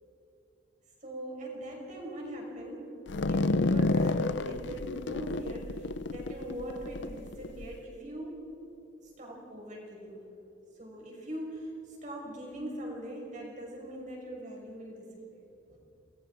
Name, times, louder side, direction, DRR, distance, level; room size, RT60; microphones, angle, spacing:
voice 1, 1.0-3.0 3.3-8.4 9.0-10.3 10.7-15.4 15.7-15.8, right 1 dB, 35° right, -1 dB, 5.8 m, -41 dB
sound 1, 3.1-7.7, left 2 dB, 60° left, 0.6 m, -30 dB
29.5 x 20.5 x 4.9 m, 2.8 s
head